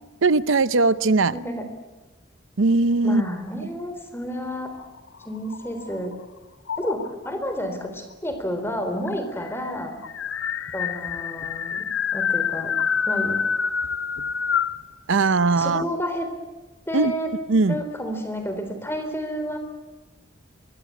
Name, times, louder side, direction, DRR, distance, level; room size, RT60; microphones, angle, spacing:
voice 1, 0.2-1.3 2.6-3.2 15.1-15.8 16.9-17.1 17.5-17.8, right 3 dB, 85° right, 16 dB, 0.7 m, -19 dB
voice 2, 1.3-1.6 3.0-4.7 5.2-6.1 6.8-10.0 10.7-12.7 13.1-13.4 15.6-16.3 16.9-17.3 17.7-19.6, equal, 10° left, 7 dB, 3.7 m, -30 dB
sound 1, 4.7-6.1 6.7-7.3 8.3-8.4 8.7-8.8 9.1-14.8, left 7 dB, 80° left, 0.9 m, -27 dB
24.5 x 22.5 x 8.5 m, 1.2 s
head